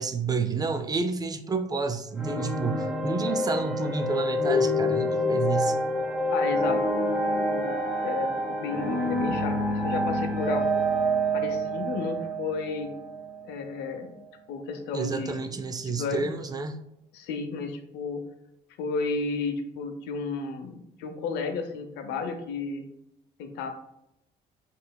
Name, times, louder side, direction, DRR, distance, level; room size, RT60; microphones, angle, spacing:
voice 1, 0.0-5.8 14.9-16.8, right 4 dB, 20° right, 8 dB, 0.4 m, -30 dB
sound 1, 2.1-13.4, equal, 5° right, 1.2 m, -27 dB
voice 2, 6.3-6.8 7.4-7.7 8.0-10.7 11.3-12.9 13.4-14.1 14.5-15.5 15.8-16.3 17.1-18.2 18.8-22.8 23.4-23.7, left 4 dB, 85° left, 6 dB, 0.7 m, -33 dB
5.5 x 3.2 x 2.2 m, 0.82 s
cardioid pair, 110°, 17 cm